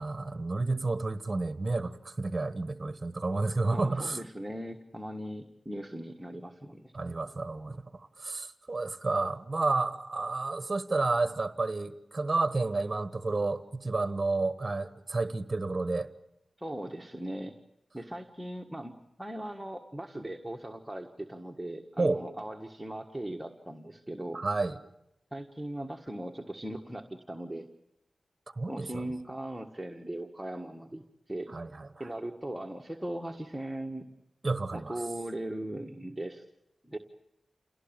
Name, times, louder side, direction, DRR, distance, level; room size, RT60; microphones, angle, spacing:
voice 1, 0.0-4.2 6.9-16.1 22.0-22.2 24.3-24.8 28.5-29.0 31.5-32.1 34.4-35.0, right 3 dB, 30° right, 11 dB, 1.3 m, -31 dB
voice 2, 3.7-6.9 16.6-17.6 17.9-24.4 25.3-27.7 28.7-31.5 32.0-34.1 34.7-36.4 36.8-37.0, right 1 dB, 5° right, 2 dB, 1.6 m, -39 dB
28.0 x 17.5 x 8.9 m, 0.87 s
wide cardioid pair, 70°, 0 cm